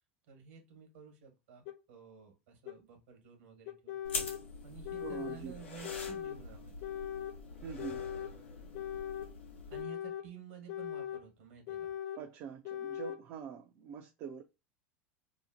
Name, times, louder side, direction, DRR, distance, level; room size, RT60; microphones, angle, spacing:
voice 1, 0.3-4.0 4.6-6.8 9.7-12.0, right 6 dB, 70° right, 1.3 m, -52 dB
sound 1, 1.7-1.8 2.7-2.8 3.7-4.4 4.8-5.4 5.8-6.4 6.8-7.4 7.8-8.3 8.7-9.3 9.7-10.3 10.7-11.2 11.7-12.2 12.6-13.2, left 10 dB, 55° left, 0.3 m, -40 dB
sound 2, 4.0-9.8, left 4 dB, 85° left, 0.9 m, -44 dB
voice 2, 5.0-5.5 7.6-8.0 12.2-14.4, right 7 dB, 50° right, 0.5 m, -44 dB
2.8 x 2.1 x 2.7 m
hypercardioid pair, 90°, 6 cm